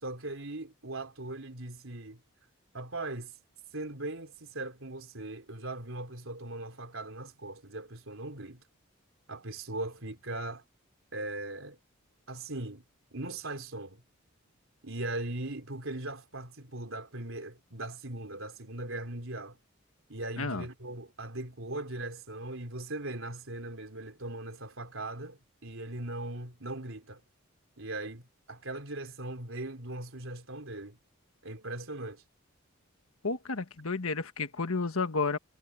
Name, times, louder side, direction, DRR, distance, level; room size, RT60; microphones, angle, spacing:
voice 1, 0.0-2.2 2.7-3.3 3.7-8.6 9.3-10.6 11.1-11.8 12.3-12.8 13.1-14.0 14.8-19.6 20.1-27.2 27.8-28.2 28.5-31.0 31.4-32.2, right 2 dB, 70° right, 3.8 m, -39 dB
voice 2, 33.2-35.4, left 4 dB, 85° left, 1.5 m, -31 dB
head